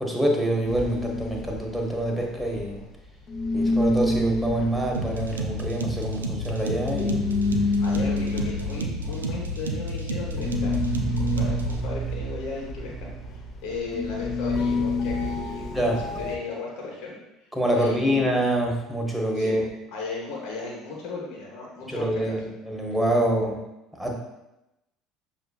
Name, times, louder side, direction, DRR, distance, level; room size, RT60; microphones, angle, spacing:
voice 1, 0.0-2.8 3.5-7.3 15.7-16.0 17.5-19.6 21.9-23.6 24.0-24.1, right 1 dB, 5° right, -1 dB, 1.0 m, -26 dB
sound 1, 0.7-3.0 3.3-16.4, left 2 dB, 35° left, 0.8 m, -28 dB
sound 2, 4.9-11.8, right 1 dB, 85° right, 0.4 m, -31 dB
voice 2, 7.8-13.1 13.6-17.2 17.7-18.2 19.3-19.6 19.9-22.4, left 3 dB, 60° left, -3 dB, 1.1 m, -36 dB
6.6 x 2.7 x 2.3 m, 0.92 s
figure-of-eight pair, 65°, 0 cm